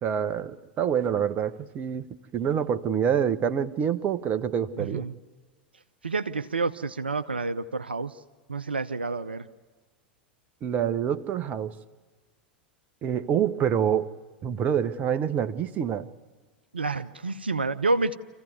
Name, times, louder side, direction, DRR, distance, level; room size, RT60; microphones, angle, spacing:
voice 1, 0.0-5.0 10.6-11.7 13.0-14.1 14.4-16.1, right 8 dB, 30° right, 11 dB, 1.0 m, -26 dB
voice 2, 4.8-5.1 6.0-8.1 8.5-9.5 16.7-18.1, right 3 dB, 80° right, 10 dB, 0.7 m, -29 dB
26.5 x 15.5 x 9.5 m, 1.4 s
figure-of-eight pair, 85°, 5 cm